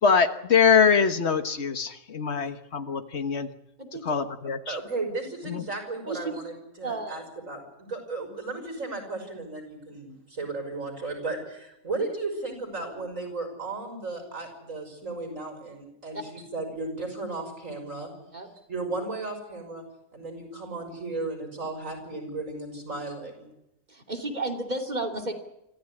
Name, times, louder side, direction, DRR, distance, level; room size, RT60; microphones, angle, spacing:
voice 1, 0.0-3.5 4.0-4.8 5.5-5.6, left 6 dB, 55° left, 9 dB, 1.6 m, -23 dB
voice 2, 3.8-4.2 6.0-6.3 6.8-7.2 16.1-16.2 18.3-18.5 23.9-25.3, right 2 dB, 30° right, 3 dB, 3.1 m, -32 dB
voice 3, 4.7-18.1 18.7-19.8 20.1-23.5, right 3 dB, 70° right, 4 dB, 6.4 m, -35 dB
25.5 x 15.0 x 9.9 m, 0.88 s
omnidirectional pair, 1.4 m